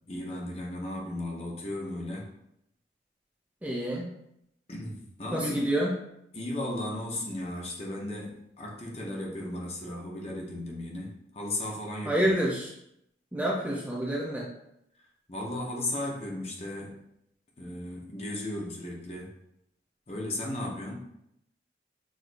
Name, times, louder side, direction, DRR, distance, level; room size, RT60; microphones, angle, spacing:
voice 1, 0.1-2.3 4.7-5.7 6.3-12.3 15.3-17.0 17.6-19.3 20.1-20.9, left 1 dB, 35° left, -2 dB, 0.9 m, -35 dB
voice 2, 3.6-4.1 5.3-5.9 12.0-12.7 13.3-14.5, right 1 dB, 10° right, -4 dB, 0.5 m, -28 dB
6.3 x 2.7 x 2.6 m, 0.79 s
head